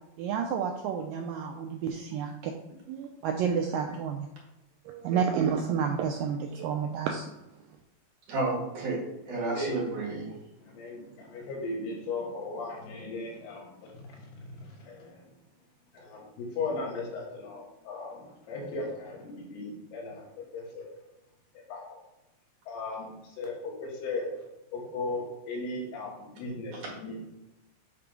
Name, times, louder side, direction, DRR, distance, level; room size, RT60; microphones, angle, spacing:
voice 1, 0.2-2.5 2.9-4.3 4.9-7.3, right 7 dB, 85° right, 3 dB, 2.0 m, -30 dB
voice 2, 8.3-9.0 9.3-10.3, right 2 dB, 55° right, -4 dB, 3.2 m, -31 dB
voice 3, 9.3-9.8 10.6-13.9 14.1-15.3 15.9-20.9 21.7-22.0 22.7-24.3 24.7-27.2, left 3 dB, 85° left, -2 dB, 3.7 m, -37 dB
8.4 x 3.4 x 5.2 m, 0.97 s
omnidirectional pair, 4.5 m